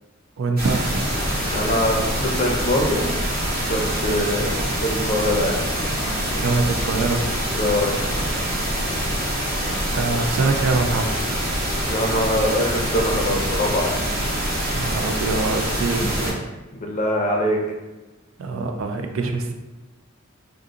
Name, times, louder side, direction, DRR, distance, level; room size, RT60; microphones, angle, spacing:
voice 1, 0.4-1.1 6.4-7.2 10.0-11.1 14.7-16.4 18.4-19.5, right 3 dB, 70° right, 4 dB, 0.4 m, -24 dB
sound 1, 0.6-16.3, equal, 45° right, 1.0 m, -25 dB
voice 2, 1.5-3.1 3.6-5.6 7.5-8.0 11.9-14.0 16.2-16.4 16.7-17.6, left 1 dB, 35° left, 0 dB, 0.5 m, -23 dB
2.5 x 2.5 x 3.7 m, 1.1 s
head